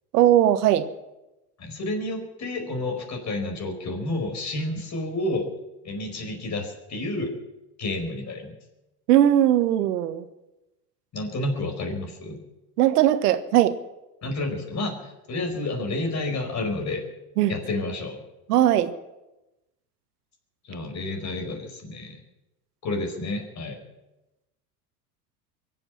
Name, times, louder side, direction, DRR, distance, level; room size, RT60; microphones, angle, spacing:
voice 1, 0.1-0.9 9.1-10.3 12.8-13.8 17.4-17.6 18.5-18.9, right 12 dB, 80° right, 11 dB, 1.3 m, -19 dB
voice 2, 1.6-5.5 5.8-7.3 7.8-8.5 11.1-12.4 14.2-17.0 17.5-18.2 20.6-22.2 22.8-23.8, left 2 dB, 35° left, 4 dB, 5.0 m, -30 dB
23.5 x 7.9 x 7.3 m, 0.97 s
hypercardioid pair, 95°, 46 cm